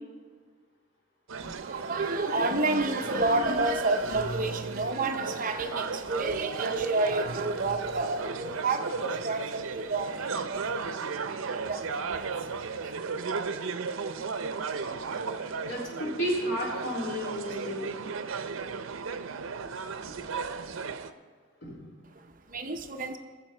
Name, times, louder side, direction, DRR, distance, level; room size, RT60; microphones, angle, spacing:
sound 1, 1.3-21.1, right 5 dB, 80° right, 0.6 m, -35 dB
voice 1, 1.4-12.9 22.0-23.2, right 2 dB, 40° right, 6 dB, 0.7 m, -30 dB
voice 2, 15.6-17.8 20.1-20.2 21.6-21.8, equal, 60° left, -5 dB, 3.8 m, -32 dB
19.5 x 7.4 x 4.4 m, 1.5 s
head